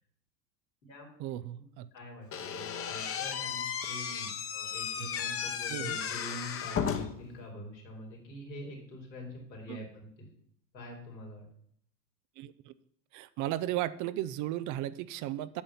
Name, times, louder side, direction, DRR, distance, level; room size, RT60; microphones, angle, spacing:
voice 1, 1.2-1.9 5.0-5.1 5.7-6.0 9.7-9.8 12.4-12.7 13.1-15.6, right 14 dB, 40° right, 16 dB, 0.5 m, -35 dB
voice 2, 1.9-10.3 10.7-11.5, left 1 dB, 90° left, -1 dB, 3.7 m, -45 dB
Slam / Squeak, 2.3-7.3, left 7 dB, 25° left, 1.0 m, -35 dB
8.4 x 7.6 x 5.6 m, 0.68 s
hypercardioid pair, 95°, 50 cm